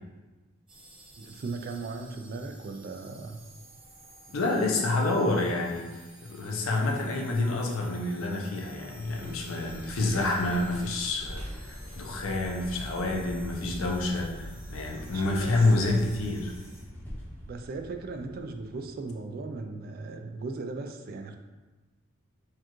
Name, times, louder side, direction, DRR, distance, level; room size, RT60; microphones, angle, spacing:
sound 1, 0.7-16.8, right 1 dB, 25° right, 0.9 m, -53 dB
voice 1, 1.2-3.4 15.0-16.0 17.4-21.4, right 3 dB, 45° right, 5 dB, 0.3 m, -37 dB
voice 2, 4.3-16.5, left 2 dB, 75° left, 0 dB, 0.6 m, -28 dB
Vehicle, 8.8-19.1, equal, 10° left, 0.7 m, -43 dB
4.6 x 2.4 x 3.0 m, 1.2 s
head